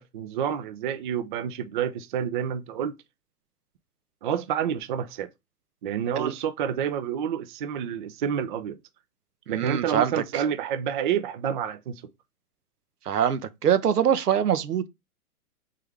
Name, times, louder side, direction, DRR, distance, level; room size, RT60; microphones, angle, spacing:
voice 1, 0.0-2.9 4.2-5.3 5.8-8.8 9.5-12.0, right 8 dB, 35° right, 0.4 m, -29 dB
voice 2, 9.5-10.4 13.0-14.9, right 9 dB, 85° right, 0.7 m, -24 dB
3.6 x 3.3 x 3.3 m
hypercardioid pair, 125°, 45 cm